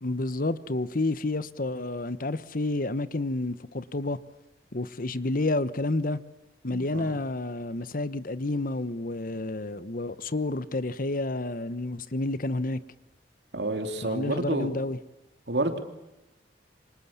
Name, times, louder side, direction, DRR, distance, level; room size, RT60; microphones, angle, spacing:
voice 1, 0.0-4.2 4.7-6.2 6.6-12.8 14.0-15.0, left 2 dB, 50° left, 1.1 m, -30 dB
voice 2, 6.7-7.1 13.5-14.7 15.5-15.8, right 2 dB, 70° right, 2.9 m, -29 dB
28.0 x 25.5 x 7.3 m
head